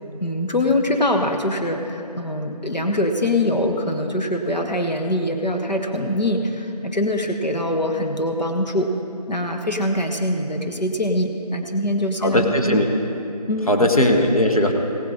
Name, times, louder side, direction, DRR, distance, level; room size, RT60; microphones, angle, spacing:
voice 1, 0.2-8.9 9.3-12.8 13.5-13.9, left 1 dB, 85° left, 2 dB, 1.2 m, -23 dB
voice 2, 12.2-12.9 13.7-14.7, left 1 dB, 55° left, 2 dB, 1.4 m, -18 dB
17.0 x 8.4 x 4.9 m, 2.8 s
figure-of-eight pair, 175°, 21 cm